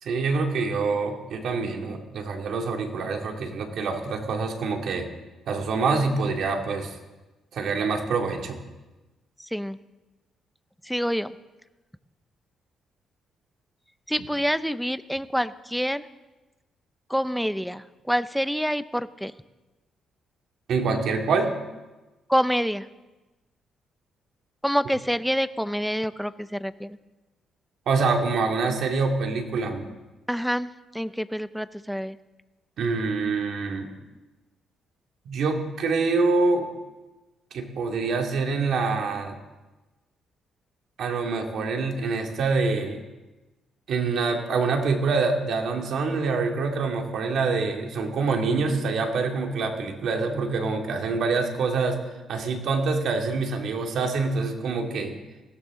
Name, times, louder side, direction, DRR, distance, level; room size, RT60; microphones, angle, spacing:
voice 1, 0.0-5.1 5.5-7.0 7.5-8.6 20.7-21.5 27.9-29.9 32.8-33.9 35.3-36.7 37.5-39.4 41.0-43.0 43.9-52.0 52.3-55.2, right 4 dB, 70° right, 2 dB, 2.4 m, -25 dB
voice 2, 9.4-9.8 10.8-11.3 14.1-16.1 17.1-19.3 22.3-22.9 24.6-27.0 30.3-32.2, equal, ahead, 13 dB, 0.6 m, -27 dB
21.0 x 16.5 x 3.8 m, 1.1 s
cardioid pair, 100°, 0 cm